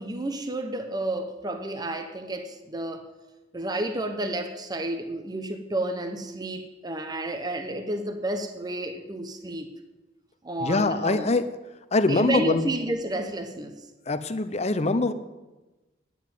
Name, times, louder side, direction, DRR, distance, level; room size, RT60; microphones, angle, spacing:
voice 1, 0.0-3.1 3.5-9.7 10.4-11.3 12.1-13.8, right 1 dB, 20° right, 1.0 m, -31 dB
voice 2, 10.6-11.5 11.9-12.6 14.1-15.1, left 3 dB, 35° left, 0.8 m, -23 dB
9.8 x 9.4 x 9.0 m
head